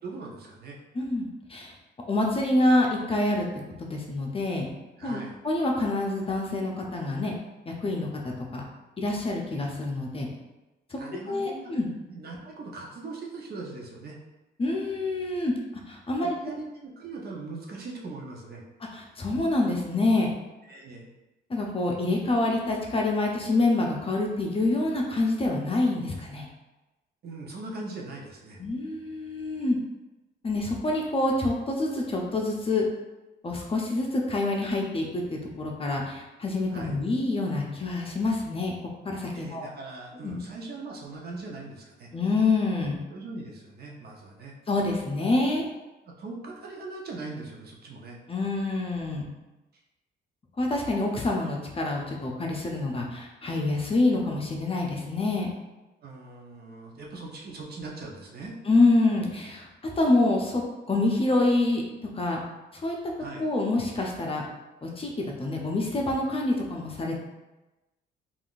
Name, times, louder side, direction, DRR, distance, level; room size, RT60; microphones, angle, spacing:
voice 1, 0.0-0.8 5.0-5.3 10.9-11.7 12.1-14.2 16.2-18.6 20.7-21.1 27.2-28.6 36.7-37.0 39.3-42.1 43.1-44.6 46.0-48.2 56.0-58.5 63.2-63.4, right 3 dB, 50° right, -1 dB, 0.7 m, -40 dB
voice 2, 0.9-1.7 2.1-3.5 3.8-4.7 5.0-7.3 7.7-8.6 9.0-10.3 10.9-11.0 11.3-11.9 14.6-15.5 15.9-16.3 18.9-20.3 21.5-26.5 28.6-29.8 30.4-32.9 33.4-38.7 39.0-39.7 40.2-40.4 42.1-43.0 44.7-45.6 48.3-49.3 50.6-55.5 58.7-59.7 60.0-60.6 60.9-61.8 62.1-62.4 62.7-63.0 63.4-64.4 64.8-65.1 65.4-67.2, left 2 dB, 30° left, -1 dB, 0.6 m, -26 dB
3.5 x 2.5 x 2.4 m, 1.1 s
cardioid pair, 90°, 20 cm